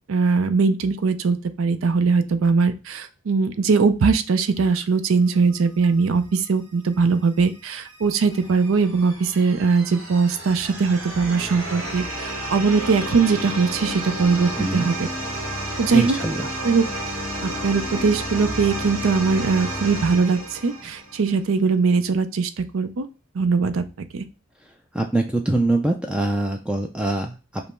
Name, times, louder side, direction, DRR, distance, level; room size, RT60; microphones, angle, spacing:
voice 1, 0.1-14.9 15.8-16.1 16.6-16.8 17.4-23.1 23.3-23.8 24.1-24.2, right 4 dB, 80° right, 10 dB, 0.5 m, -21 dB
sound 1, 7.5-21.3, right 1 dB, 30° right, 1.8 m, -31 dB
voice 2, 14.6-14.9 15.9-16.5 24.6-27.6, right 2 dB, 5° right, 3 dB, 0.3 m, -24 dB
5.3 x 2.0 x 4.3 m, 0.32 s
head